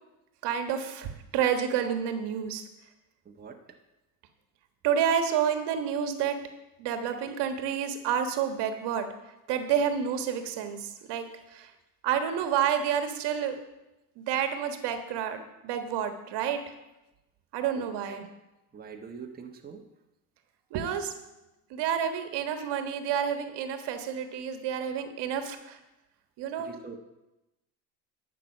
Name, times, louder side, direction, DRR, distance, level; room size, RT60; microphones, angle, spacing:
voice 1, 0.4-2.6 4.8-6.4 6.8-9.1 9.5-11.7 12.0-13.6 14.2-16.7 17.5-18.2 20.7-21.1 21.7-25.8 26.4-26.7, right 8 dB, 55° right, 7 dB, 1.5 m, -29 dB
voice 2, 3.2-3.6 7.2-7.3 17.7-18.2 18.7-19.8 26.6-27.0, right 6 dB, 20° right, 2 dB, 1.2 m, -44 dB
11.5 x 5.9 x 7.2 m, 0.97 s
hypercardioid pair, 85°, 50 cm